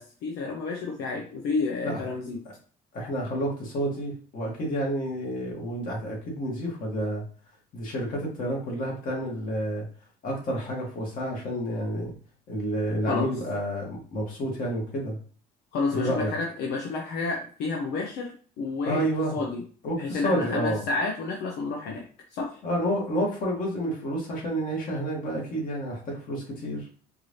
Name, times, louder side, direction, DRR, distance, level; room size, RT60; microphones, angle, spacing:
voice 1, 0.0-2.4 13.1-13.3 15.7-19.1 19.3-19.6 20.0-22.0 22.3-22.6, left 3 dB, 85° left, 0 dB, 0.8 m, -30 dB
voice 2, 2.9-7.2 7.7-9.8 10.2-12.1 12.5-15.2 15.9-16.3 18.9-19.4 19.8-20.8 22.6-26.8, equal, 55° left, -2 dB, 2.1 m, -29 dB
4.6 x 2.7 x 3.2 m, 0.42 s
cardioid pair, 110°, 17 cm